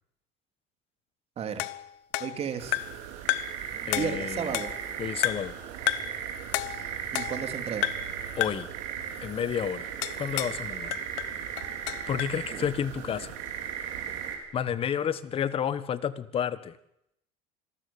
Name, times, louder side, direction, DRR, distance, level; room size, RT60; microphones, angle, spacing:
voice 1, 1.4-1.7 2.2-2.8 3.7-4.7 7.1-7.9 12.5-12.7, right 7 dB, 40° right, 7 dB, 2.9 m, -34 dB
sound 1, 1.6-3.0 3.3-3.6 3.9-4.9 5.2-5.6 5.9-6.2 6.5-7.5 7.8-8.1 8.4-8.7 10.0-10.6 10.9-12.4, left 18 dB, 85° left, 0.9 m, -31 dB
sound 2, 2.6-14.4, right 8 dB, 85° right, 4.8 m, -37 dB
voice 2, 3.9-4.6 5.0-5.5 8.4-8.7 9.2-11.0 12.1-13.4 14.5-16.8, left 8 dB, 35° left, 15 dB, 1.3 m, -31 dB
26.0 x 13.0 x 8.6 m, 0.77 s
cardioid pair, 120°, 16 cm